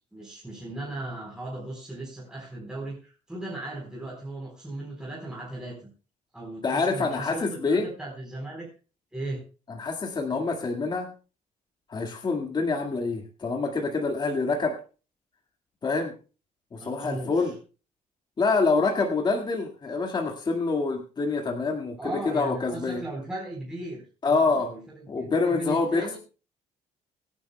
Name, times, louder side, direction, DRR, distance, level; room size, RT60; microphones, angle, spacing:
voice 1, 0.1-5.9 6.3-8.7 9.1-9.4 16.8-17.5 22.0-26.2, right 2 dB, 5° right, -3 dB, 4.1 m, -37 dB
voice 2, 6.6-7.9 9.8-11.1 11.9-14.8 15.8-16.1 16.7-17.5 18.4-22.0 22.3-23.0 24.2-24.7 25.1-26.2, left 3 dB, 30° left, 2 dB, 1.9 m, -26 dB
24.0 x 9.9 x 2.2 m, 0.34 s
cardioid pair, 135°, 15 cm